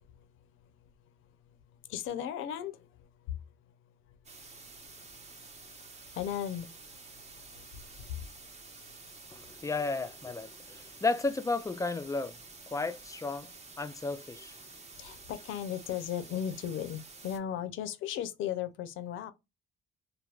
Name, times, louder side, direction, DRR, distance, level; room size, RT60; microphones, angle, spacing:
voice 1, 0.0-1.4 1.7-6.8 7.1-8.3 8.7-9.0 9.3-9.4 14.9-19.3, left 10 dB, 85° left, 0.5 m, -39 dB
sound 1, 4.2-17.4, right 3 dB, 35° right, 0.9 m, -50 dB
voice 2, 9.3-12.4 12.7-13.5 13.8-14.5, left 3 dB, 15° left, 0.3 m, -33 dB
3.3 x 2.2 x 2.2 m
cardioid pair, 90°, 20 cm